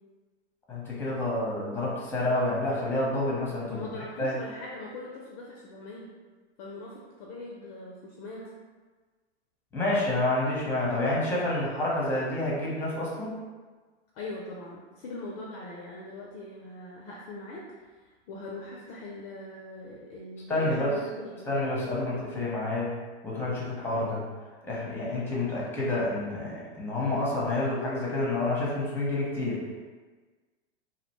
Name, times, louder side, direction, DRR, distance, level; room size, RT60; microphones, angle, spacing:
voice 1, 0.7-3.8 4.2-4.3 9.7-13.3 20.5-20.9 21.5-22.9 23.2-24.2 24.6-29.6, left 2 dB, 5° left, -5 dB, 0.7 m, -28 dB
voice 2, 3.7-6.1 6.6-8.5 14.1-21.5, left 2 dB, 35° left, -3 dB, 0.4 m, -41 dB
2.6 x 2.0 x 2.9 m, 1.4 s
hypercardioid pair, 105°, 35 cm